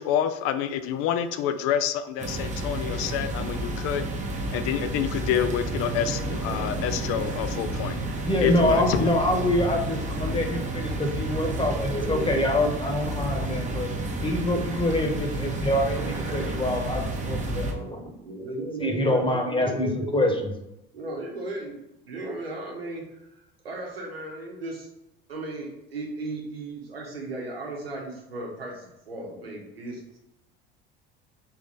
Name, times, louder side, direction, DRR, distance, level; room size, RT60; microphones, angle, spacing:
voice 1, 0.0-4.0 4.5-8.0 8.4-9.1, left 9 dB, 50° left, 10 dB, 0.4 m, -28 dB
sound 1, 2.2-17.7, right 2 dB, 25° right, 0.9 m, -30 dB
voice 2, 8.2-13.9 14.2-18.0 18.8-20.5, left 1 dB, 15° left, 3 dB, 1.1 m, -25 dB
voice 3, 11.5-12.3 17.7-20.1 20.9-21.8 22.0-24.9 25.3-30.2, right 2 dB, 90° right, -1 dB, 1.1 m, -36 dB
3.8 x 3.0 x 3.9 m, 0.88 s
hypercardioid pair, 70°, 29 cm